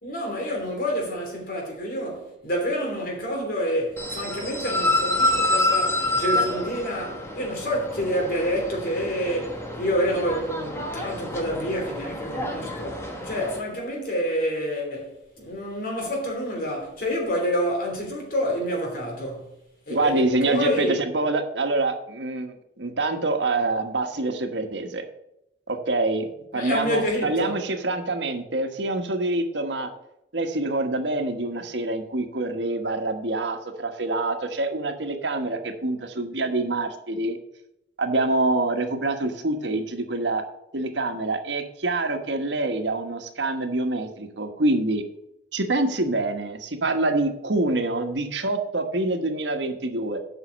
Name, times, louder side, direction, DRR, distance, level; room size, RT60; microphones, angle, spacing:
voice 1, 0.0-19.5 19.9-21.0 26.5-27.6, equal, 55° left, 3.2 m, -28 dB
sound 1, 4.0-13.6, left 1 dB, 15° left, 1.3 m, -28 dB
voice 2, 19.9-25.0 25.7-29.9 30.3-37.4 38.0-40.4 40.7-45.0 45.5-50.2, right 2 dB, 90° right, 1.3 m, -26 dB
8.2 x 5.7 x 6.4 m
head